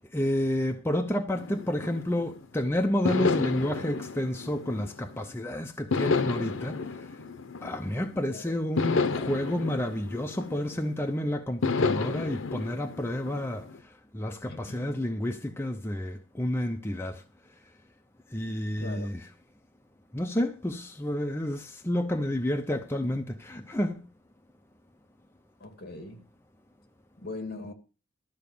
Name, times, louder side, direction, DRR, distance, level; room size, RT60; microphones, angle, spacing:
voice 1, 0.1-7.2 7.6-13.7 14.1-17.2 18.3-19.3 20.1-24.1, left 1 dB, 10° left, 0.6 m, -30 dB
sound 1, 1.3-2.5 3.0-5.3 5.9-8.2 8.8-11.0 11.6-13.8, left 4 dB, 75° left, 0.7 m, -31 dB
voice 2, 14.5-14.9 18.8-19.1 25.6-26.3 27.2-27.7, left 2 dB, 50° left, 2.2 m, -40 dB
13.0 x 5.7 x 6.9 m
head